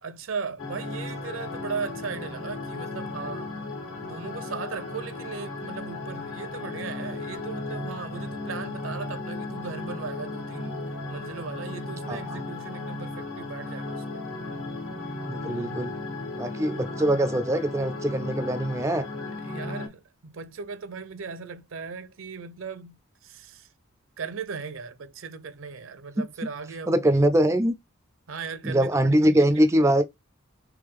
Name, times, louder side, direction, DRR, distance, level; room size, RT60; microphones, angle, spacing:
voice 1, 0.0-3.5 4.0-14.2 15.4-15.9 19.4-23.7 24.2-27.2 28.3-29.8, right 5 dB, 75° right, 0.6 m, -38 dB
sound 1, 0.6-19.9, left 2 dB, 80° left, 1.3 m, -35 dB
voice 2, 15.3-15.9 16.3-19.1 26.2-26.3 26.9-27.7 28.6-30.0, right 1 dB, 15° right, 0.3 m, -22 dB
3.6 x 3.0 x 3.4 m
head